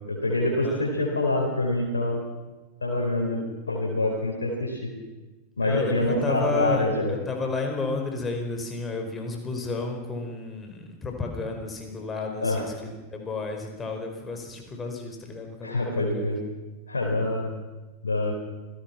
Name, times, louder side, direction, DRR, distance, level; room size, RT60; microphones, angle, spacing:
voice 1, 0.1-2.2 2.8-4.9 5.6-7.1 12.4-12.6 15.6-16.4 16.9-17.5 18.0-18.3, left 1 dB, 75° left, -3 dB, 4.7 m, -26 dB
voice 2, 5.6-16.3, left 3 dB, 15° left, 3 dB, 4.9 m, -32 dB
27.5 x 18.0 x 6.1 m, 1.2 s
figure-of-eight pair, 90°, 0 cm